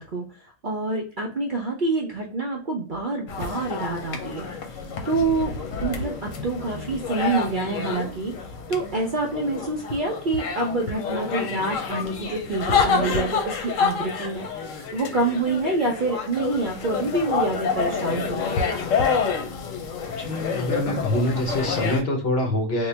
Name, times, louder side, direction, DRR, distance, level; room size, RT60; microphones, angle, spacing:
voice 1, 0.0-4.5 5.0-5.5 5.8-8.3 8.7-18.7, right 3 dB, 55° right, 0 dB, 0.5 m, -27 dB
sound 1, 3.3-22.0, left 5 dB, 85° left, 1.0 m, -28 dB
voice 2, 20.2-22.9, left 1 dB, 55° left, 1 dB, 1.1 m, -25 dB
3.7 x 2.2 x 3.2 m, 0.41 s
omnidirectional pair, 1.3 m